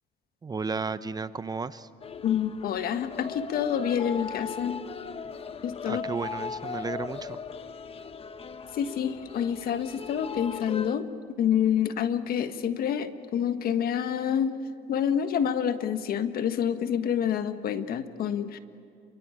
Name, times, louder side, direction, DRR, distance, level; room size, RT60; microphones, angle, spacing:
voice 1, 0.4-1.9 5.8-7.4, right 4 dB, 25° right, 14 dB, 0.7 m, -33 dB
sound 1, 2.0-11.0, left 5 dB, 35° left, 1.0 m, -38 dB
voice 2, 2.2-4.8 5.6-6.0 8.7-11.1 11.4-14.5 14.9-18.6, left 8 dB, 65° left, 9 dB, 1.5 m, -27 dB
28.5 x 23.5 x 8.7 m, 2.4 s
cardioid pair, 110°, 17 cm